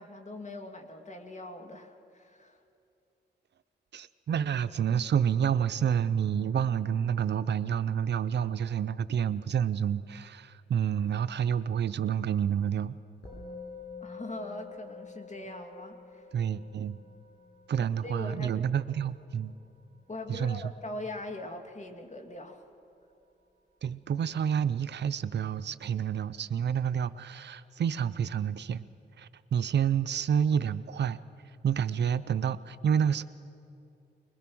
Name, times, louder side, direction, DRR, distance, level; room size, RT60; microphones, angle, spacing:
voice 1, 0.0-2.6 14.0-16.3 18.0-18.6 20.1-22.6, left 1 dB, 40° left, 5 dB, 2.2 m, -41 dB
voice 2, 3.9-13.0 16.3-17.0 17.7-19.5 20.3-20.7 23.8-28.9 29.2-33.2, right 8 dB, 70° right, 14 dB, 0.6 m, -29 dB
Musical instrument, 13.2-22.8, left 4 dB, 75° left, 6.9 m, -49 dB
21.5 x 20.5 x 6.2 m, 2.7 s
cardioid pair, 60°, 18 cm